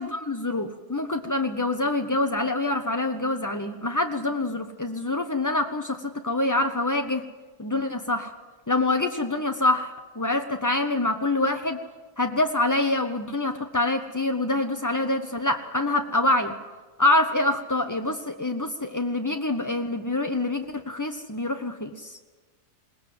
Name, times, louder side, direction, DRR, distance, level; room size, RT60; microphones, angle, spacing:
voice 1, 0.0-7.2 7.6-8.3 8.7-11.8 12.2-16.5 17.0-22.2, left 2 dB, 30° left, 5 dB, 0.3 m, -26 dB
21.0 x 18.5 x 7.8 m, 1.3 s
omnidirectional pair, 1.8 m